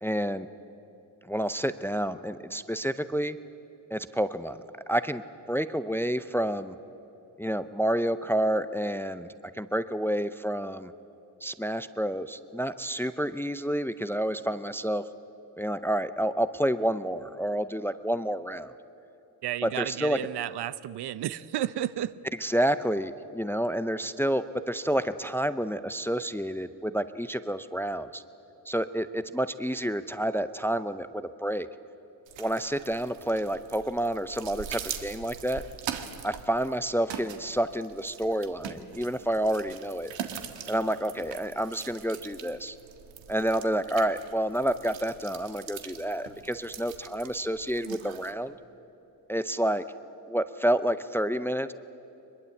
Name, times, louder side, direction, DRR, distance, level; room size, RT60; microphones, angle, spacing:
voice 1, 0.0-0.5 1.2-3.4 3.9-5.2 5.5-6.8 7.4-10.9 11.4-15.0 15.6-18.7 19.6-20.2 22.4-28.2 28.7-31.7 32.4-35.6 36.2-40.1 40.7-42.8 43.3-48.5 49.3-49.8 50.3-51.7, right 1 dB, 5° left, 12 dB, 0.5 m, -29 dB
voice 2, 19.4-22.1, right 12 dB, 60° right, 16 dB, 0.7 m, -32 dB
sound 1, 32.3-48.3, right 8 dB, 85° right, 1.7 m, -42 dB
23.0 x 21.5 x 8.4 m, 2.9 s
cardioid pair, 110°, 44 cm